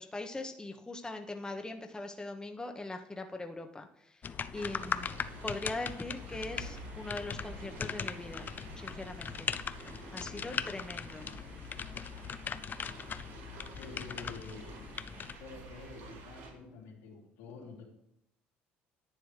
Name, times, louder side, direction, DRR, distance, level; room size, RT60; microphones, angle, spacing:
voice 1, 0.0-4.2 4.5-8.5 8.8-9.5 10.1-11.3, left 2 dB, 15° left, 4 dB, 1.1 m, -41 dB
sound 1, 4.2-15.4, left 6 dB, 40° left, 0.6 m, -40 dB
sound 2, 4.5-16.5, right 2 dB, 80° right, 4.5 m, -50 dB
voice 2, 13.8-14.8 15.4-17.8, left 4 dB, 80° left, -1 dB, 3.2 m, -48 dB
10.5 x 9.0 x 3.3 m, 0.77 s
supercardioid pair, 70°, 5 cm